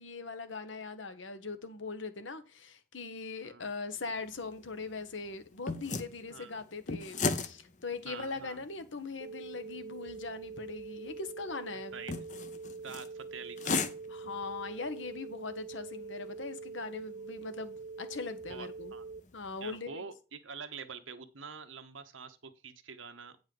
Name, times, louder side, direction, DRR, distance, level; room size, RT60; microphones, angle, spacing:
voice 1, 0.0-12.0 14.1-18.9 19.3-20.0, left 4 dB, 75° left, 1.1 m, -41 dB
sound 1, 4.0-19.8, left 4 dB, 40° left, 0.7 m, -41 dB
voice 2, 6.3-6.6 8.1-8.6 11.9-12.1 12.8-13.8 18.5-19.1 19.6-22.4 22.6-23.4, right 5 dB, 80° right, 1.1 m, -46 dB
sound 2, 9.2-19.2, right 4 dB, 55° right, 0.5 m, -44 dB
8.8 x 5.3 x 5.4 m
head